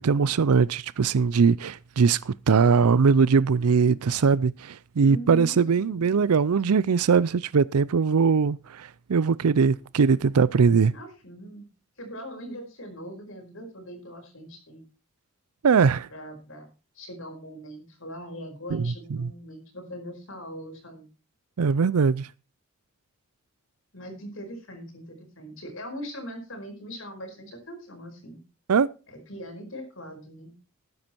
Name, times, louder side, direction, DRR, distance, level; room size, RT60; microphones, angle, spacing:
voice 1, 0.0-10.9 15.6-16.1 18.7-19.3 21.6-22.3 28.7-28.9, right 5 dB, 85° right, 0.5 m, -21 dB
voice 2, 5.0-6.0 10.9-11.7 12.0-14.8 16.1-21.1 23.9-28.4 29.1-30.5, equal, 65° left, 5.0 m, -41 dB
13.0 x 9.7 x 4.5 m
head